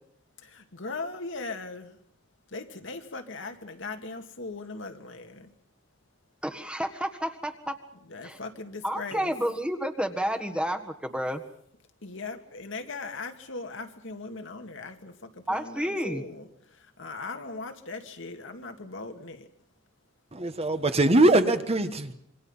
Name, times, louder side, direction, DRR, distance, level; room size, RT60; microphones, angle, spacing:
voice 1, 0.4-1.9 2.5-5.5 8.1-9.3 12.0-15.1 15.5-16.4 17.0-19.5, left 3 dB, 70° left, 2.2 m, -39 dB
voice 2, 6.4-7.7 8.2-8.4 8.8-11.4 15.5-16.3, equal, 5° right, 1.6 m, -30 dB
voice 3, 20.3-22.1, right 2 dB, 30° right, 1.4 m, -22 dB
26.5 x 24.0 x 5.6 m
head